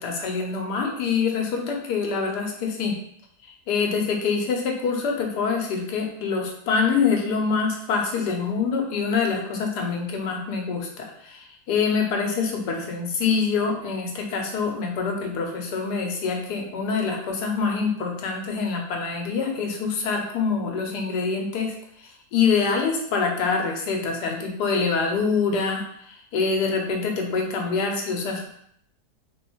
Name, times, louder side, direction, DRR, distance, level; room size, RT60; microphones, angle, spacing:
voice 1, 0.0-3.0 3.4-21.7 22.0-28.5, left 5 dB, 80° left, 2 dB, 1.3 m, -25 dB
3.8 x 3.1 x 3.0 m, 0.67 s
omnidirectional pair, 1.7 m